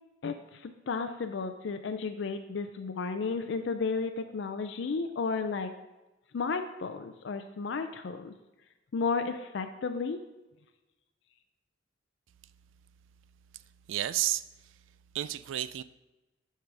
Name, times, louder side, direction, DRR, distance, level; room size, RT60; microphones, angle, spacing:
voice 1, 0.2-5.7 6.3-8.3 8.9-10.2, left 4 dB, 65° left, 7 dB, 0.4 m, -33 dB
voice 2, 13.9-14.4 15.1-15.8, right 13 dB, 80° right, 15 dB, 0.3 m, -31 dB
9.4 x 5.5 x 3.4 m, 1.1 s
head